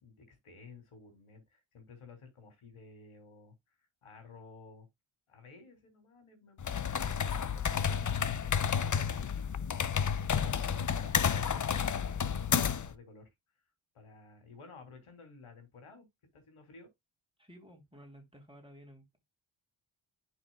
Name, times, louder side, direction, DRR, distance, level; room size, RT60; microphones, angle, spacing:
voice 1, 0.0-4.9 5.3-10.0 10.3-11.2 11.7-13.3 13.9-16.1 16.3-16.9, left 4 dB, 85° left, 3.3 m, -54 dB
sound 1, 6.6-12.9, left 7 dB, 40° left, 0.7 m, -31 dB
voice 2, 17.4-19.1, equal, 10° right, 3.5 m, -54 dB
11.0 x 5.9 x 2.3 m
cardioid pair, 75°, 49 cm